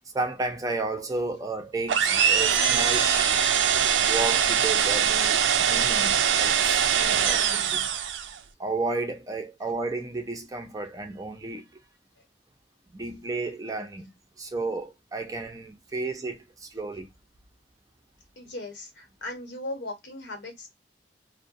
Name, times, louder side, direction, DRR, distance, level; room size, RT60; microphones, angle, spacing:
voice 1, 0.1-3.1 4.1-8.0 8.6-11.7 12.9-14.1 14.4-17.1, right 3 dB, 20° right, 0.5 m, -32 dB
sound 1, 1.9-8.4, right 8 dB, 90° right, 0.4 m, -22 dB
voice 2, 18.4-20.7, left 2 dB, 70° left, 1.1 m, -38 dB
2.3 x 2.1 x 2.6 m
head